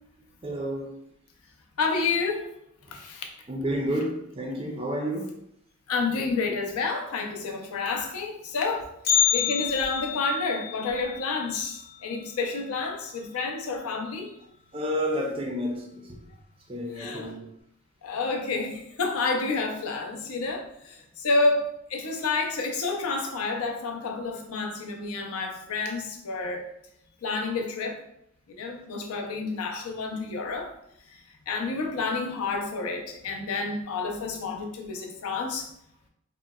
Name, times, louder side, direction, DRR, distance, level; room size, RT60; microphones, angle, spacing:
voice 1, 0.4-1.0 2.9-3.0 3.5-5.4 14.7-16.2 16.7-17.5, equal, 25° right, 0.4 m, -30 dB
voice 2, 1.8-2.5 2.9-3.3 5.9-8.9 9.3-14.3 17.0-17.3 18.0-26.7 27.2-28.0 28.5-30.7 31.5-35.7, left 3 dB, 80° left, 0.5 m, -29 dB
Bell, 9.0-13.1 13.4-13.5 14.0-14.1 14.9-15.0 15.8-16.0 16.4-16.5, left 10 dB, 45° left, 0.8 m, -29 dB
3.7 x 2.0 x 2.2 m
head